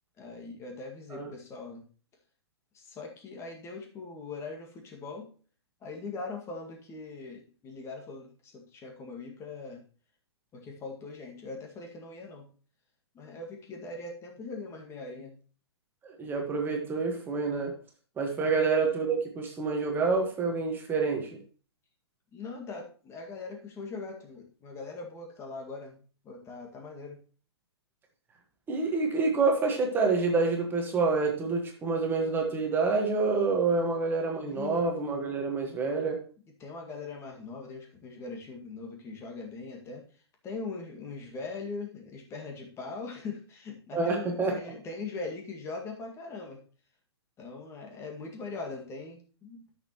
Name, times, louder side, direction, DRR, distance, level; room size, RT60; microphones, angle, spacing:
voice 1, 0.2-1.8 2.7-5.3 5.8-9.8 10.5-12.5 13.1-15.4 18.4-18.6 22.3-27.2 34.4-34.8 36.6-40.0 40.4-46.6 47.4-49.7, left 3 dB, 20° left, 1 dB, 1.9 m, -41 dB
voice 2, 16.0-17.7 18.2-21.3 28.7-36.2 43.9-44.6, right 4 dB, 15° right, 2 dB, 1.4 m, -27 dB
12.5 x 6.5 x 3.0 m, 0.40 s
figure-of-eight pair, 120°, 14 cm